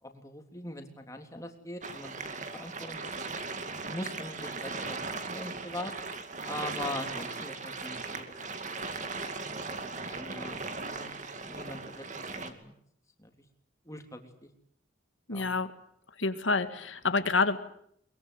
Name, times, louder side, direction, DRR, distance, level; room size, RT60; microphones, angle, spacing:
voice 1, 0.0-2.1 2.5-3.1 3.8-5.0 5.3-5.9 6.4-8.3 9.0-9.7 10.1-12.8 13.2-13.3 13.8-14.5 15.3-15.5, left 1 dB, 15° left, 4 dB, 3.4 m, -42 dB
sound 1, 1.8-12.5, right 3 dB, 40° right, 2.4 m, -38 dB
voice 2, 15.3-15.7 16.2-17.6, left 3 dB, 85° left, 9 dB, 2.1 m, -27 dB
23.0 x 22.0 x 9.8 m, 0.69 s
head